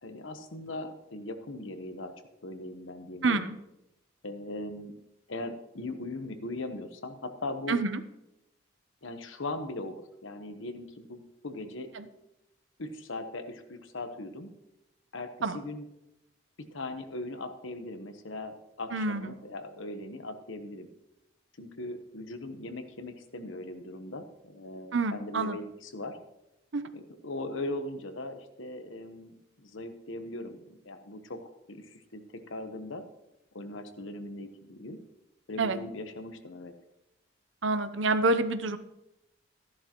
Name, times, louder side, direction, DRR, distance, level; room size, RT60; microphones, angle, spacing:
voice 1, 0.0-2.1 2.4-3.4 4.2-4.9 5.3-7.8 9.0-11.9 12.8-14.5 15.1-15.8 16.7-20.9 21.6-26.2 26.9-31.4 31.7-32.2 32.5-33.0 33.5-35.0 35.5-36.7, left 2 dB, 80° left, 8 dB, 1.1 m, -39 dB
voice 2, 3.2-3.5 7.7-8.0 15.4-15.6 18.9-19.3 24.9-25.6 26.7-26.9 35.6-35.8 37.6-38.8, right 3 dB, 75° right, 11 dB, 0.7 m, -27 dB
13.5 x 11.0 x 3.0 m, 0.88 s
head